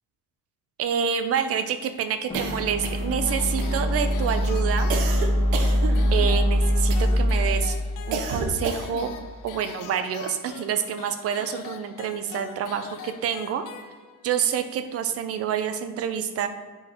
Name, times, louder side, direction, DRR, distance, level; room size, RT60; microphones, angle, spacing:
voice 1, 0.8-4.9 6.1-7.8 8.1-9.1 9.4-13.6 14.2-16.5, right 8 dB, 45° right, 8 dB, 0.6 m, -27 dB
sound 1, 2.3-9.4, equal, 15° left, 1.0 m, -24 dB
sound 2, 2.3-3.2 3.6-4.1 4.9-6.4 6.9-7.3 8.1-9.1, right 4 dB, 85° right, 0.9 m, -31 dB
sound 3, 3.3-14.4, left 8 dB, 65° left, 0.6 m, -43 dB
9.8 x 4.0 x 3.0 m, 1.4 s
cardioid pair, 140°, 34 cm